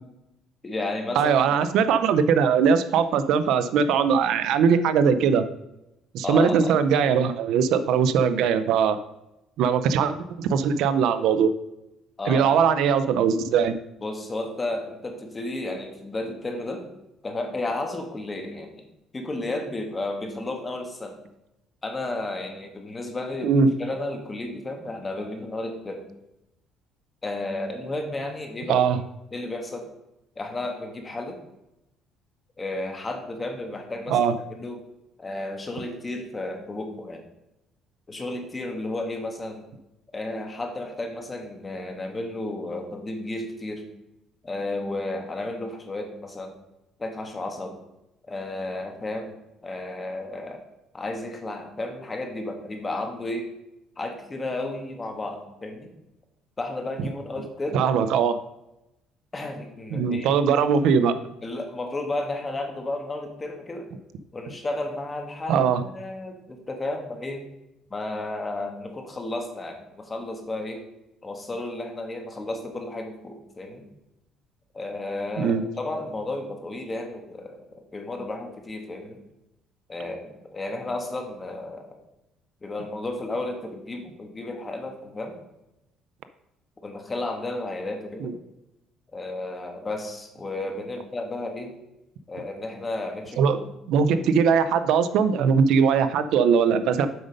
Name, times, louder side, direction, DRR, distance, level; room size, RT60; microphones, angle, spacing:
voice 1, 0.6-1.5 6.2-6.7 12.2-12.4 14.0-16.9 17.2-18.8 19.1-21.2 21.8-26.0 27.2-28.9 29.3-29.9 30.4-31.4 32.6-34.2 34.5-34.8 35.2-37.2 38.1-39.6 40.1-43.8 44.4-46.5 47.0-47.8 48.3-50.6 50.9-53.5 54.0-55.9 56.6-57.8 59.3-60.4 61.4-63.9 64.3-67.4 67.9-70.8 71.2-73.9 74.7-79.2 79.9-81.9 82.6-85.4 86.8-88.3 89.1-91.7 92.3-93.7, left 2 dB, 20° left, 4 dB, 1.4 m, -33 dB
voice 2, 1.2-5.4 6.1-9.0 9.6-11.5 12.3-13.8 23.4-23.7 28.7-29.0 34.1-34.4 57.7-58.3 59.9-61.1 65.5-65.8 75.4-75.7 88.2-88.3 93.4-93.6 93.9-97.1, right 6 dB, 70° right, 11 dB, 0.5 m, -20 dB
7.8 x 5.2 x 5.1 m, 0.89 s
cardioid pair, 140°, 0 cm